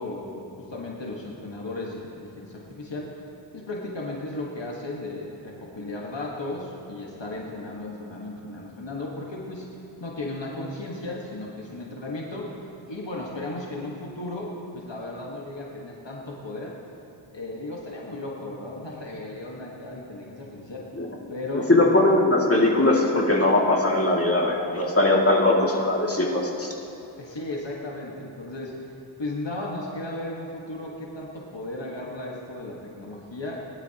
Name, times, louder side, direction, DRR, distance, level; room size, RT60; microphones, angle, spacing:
voice 1, 0.0-3.1 3.5-16.8 17.3-20.9 21.3-21.7 27.2-33.7, left 2 dB, 60° left, -3 dB, 1.6 m, -35 dB
voice 2, 21.7-26.7, left 2 dB, 30° left, -3 dB, 2.2 m, -20 dB
20.5 x 12.0 x 2.9 m, 2.9 s
wide cardioid pair, 45°, 48 cm